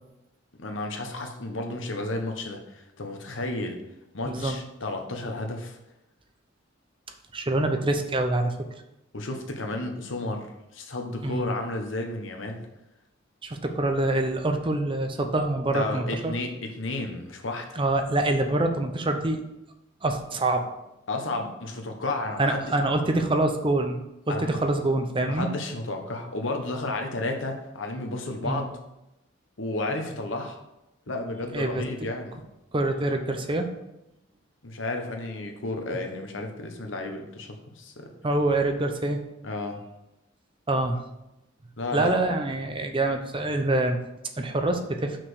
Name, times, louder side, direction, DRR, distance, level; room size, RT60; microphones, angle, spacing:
voice 1, 0.6-3.8 4.1-5.8 9.1-10.5 10.7-12.6 15.7-17.8 21.1-22.7 24.3-24.5 25.3-28.7 29.6-30.6 31.1-32.4 34.6-37.5 37.8-38.1 39.4-39.8 41.8-42.2, left 2 dB, 70° left, 3 dB, 1.2 m, -32 dB
voice 2, 4.3-4.6 7.3-8.5 11.2-11.5 13.4-16.3 17.8-19.4 20.0-20.6 22.4-25.5 28.4-28.6 31.5-31.8 32.7-33.7 38.2-39.2 40.7-41.0 41.9-44.0 44.4-45.2, right 2 dB, 25° right, 5 dB, 0.7 m, -25 dB
6.0 x 5.0 x 6.3 m, 0.91 s
head